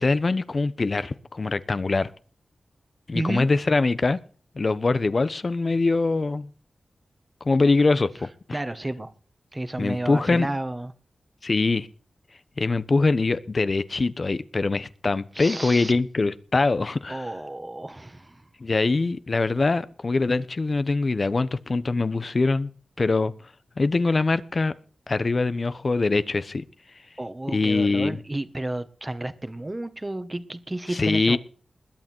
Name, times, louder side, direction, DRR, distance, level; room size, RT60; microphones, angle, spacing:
voice 1, 0.0-2.1 3.1-4.2 4.5-6.5 7.4-8.6 9.8-10.5 11.4-11.9 12.6-17.3 18.6-23.3 23.8-24.7 25.1-26.6 27.5-28.2 30.9-31.4, left 3 dB, 50° left, 1.2 m, -23 dB
voice 2, 3.1-3.5 8.5-9.1 9.5-10.9 15.4-15.9 17.1-18.4 27.2-31.4, right 1 dB, 25° right, 1.7 m, -31 dB
21.0 x 8.6 x 4.7 m
cardioid pair, 50°, 0 cm